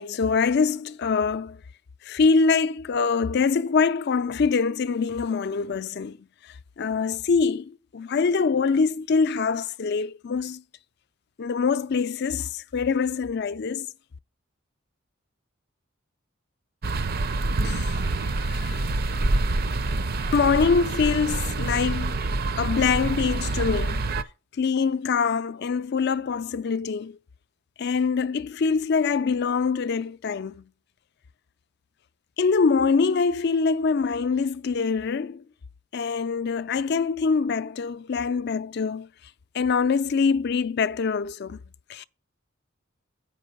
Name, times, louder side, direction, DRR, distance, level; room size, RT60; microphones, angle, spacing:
voice 1, 0.0-1.6 2.1-6.2 6.8-10.6 11.4-13.9 17.6-18.0 18.4-18.8 20.3-22.2 22.6-24.1 24.6-27.2 27.8-30.6 32.4-35.4 35.9-39.1 39.5-41.6 41.9-42.0, left 5 dB, 55° left, 0.4 m, -24 dB
sound 1, 16.8-24.2, right 2 dB, 50° right, 0.5 m, -26 dB
8.6 x 5.4 x 6.3 m
head